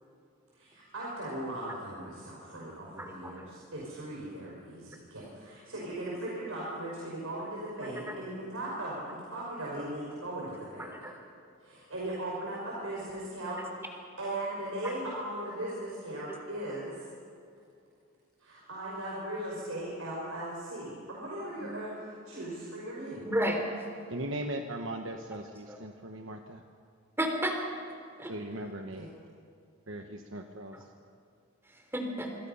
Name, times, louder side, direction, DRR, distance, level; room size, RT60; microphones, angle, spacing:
voice 1, 0.5-10.9 11.6-13.6 14.2-17.0 18.4-23.2 28.9-29.1, right 1 dB, 80° right, -5 dB, 5.8 m, -38 dB
voice 2, 3.0-3.5 8.1-8.2 10.8-11.1 14.8-14.9 21.6-21.7 23.3-23.7 25.7-25.8 27.2-27.6 28.2-28.3 31.9-32.3, equal, 10° right, 3 dB, 3.4 m, -32 dB
voice 3, 24.1-26.6 28.3-29.1 29.9-30.8, right 1 dB, 65° right, 4 dB, 1.2 m, -38 dB
26.0 x 25.5 x 5.6 m, 2.3 s
head